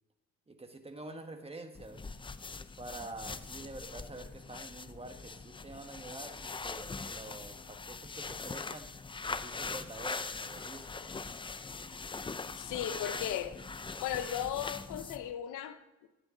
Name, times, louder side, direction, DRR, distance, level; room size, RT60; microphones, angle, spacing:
voice 1, 0.5-2.0 2.8-8.9 9.3-11.0, right 2 dB, 20° right, 5 dB, 1.5 m, -47 dB
sound 1, 1.7-15.3, left 4 dB, 15° left, 0.5 m, -42 dB
voice 2, 12.6-13.5 14.0-16.1, left 10 dB, 90° left, 11 dB, 0.9 m, -36 dB
14.0 x 8.9 x 3.8 m, 1.0 s
cardioid pair, 90°, 30 cm